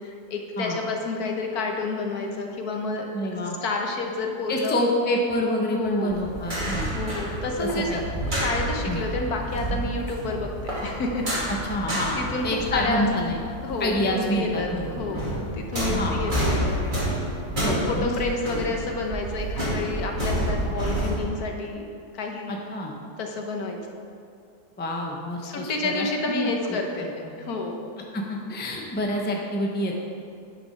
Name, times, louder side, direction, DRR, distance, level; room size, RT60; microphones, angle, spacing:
voice 1, 0.0-3.1 3.4-4.8 5.7-6.2 6.9-8.0 8.3-11.5 12.1-13.1 13.6-17.0 17.6-21.8 22.1-22.6 23.2-23.8 25.4-27.1 27.4-27.8, left 3 dB, 70° left, 2 dB, 1.5 m, -30 dB
voice 2, 3.1-3.5 4.5-6.9 7.6-8.0 8.8-9.0 11.5-13.4 13.8-15.1 16.0-16.2 17.6-18.1 22.5-22.9 24.8-26.8 27.2-27.3 28.1-30.0, left 1 dB, 10° left, 0 dB, 0.6 m, -27 dB
sound 1, 6.1-14.0 14.2-21.2, right 1 dB, 30° right, 2.3 m, -29 dB
sound 2, 6.5-17.6, right 1 dB, 55° left, 1.4 m, -41 dB
9.5 x 6.1 x 5.8 m, 2.3 s
omnidirectional pair, 1.7 m